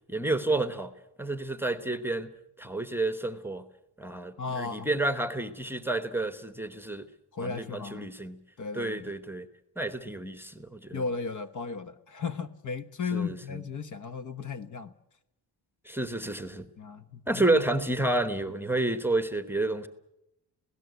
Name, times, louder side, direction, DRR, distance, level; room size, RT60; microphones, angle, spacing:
voice 1, 0.1-0.9 1.2-2.3 2.6-3.6 4.0-7.0 7.4-8.4 8.7-9.5 9.8-11.0 13.1-13.3 15.8-16.7 17.3-19.9, right 2 dB, 5° right, 10 dB, 1.1 m, -30 dB
voice 2, 4.4-4.9 7.3-8.1 8.6-9.1 10.9-14.9 16.8-17.6, left 5 dB, 45° left, 11 dB, 1.2 m, -35 dB
27.0 x 17.5 x 8.1 m, 0.87 s
wide cardioid pair, 160°, 42 cm